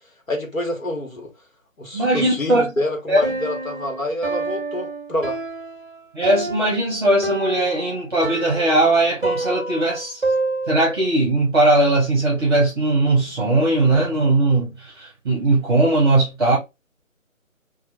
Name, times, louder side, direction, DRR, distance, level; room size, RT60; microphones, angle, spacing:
voice 1, 0.3-1.3 1.8-5.4, left 1 dB, 75° left, 1.3 m, -27 dB
voice 2, 1.9-2.7 3.1-3.2 6.1-10.2 10.7-16.6, right 2 dB, 20° right, 1.0 m, -19 dB
Piano, 3.2-11.1, right 2 dB, 40° right, 0.6 m, -28 dB
3.0 x 2.5 x 2.7 m
figure-of-eight pair, 150°, 41 cm